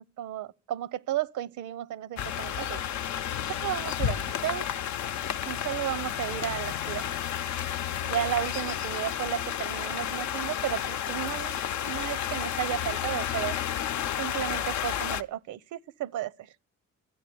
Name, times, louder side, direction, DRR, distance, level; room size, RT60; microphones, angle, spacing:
voice 1, 0.0-2.8 3.5-4.7 5.5-7.1 8.0-13.6 14.2-16.3, right 12 dB, 80° right, 0.8 m, -33 dB
sound 1, 2.2-15.2, left 10 dB, 70° left, 0.7 m, -31 dB
13.0 x 10.0 x 8.5 m
cardioid pair, 90°, 30 cm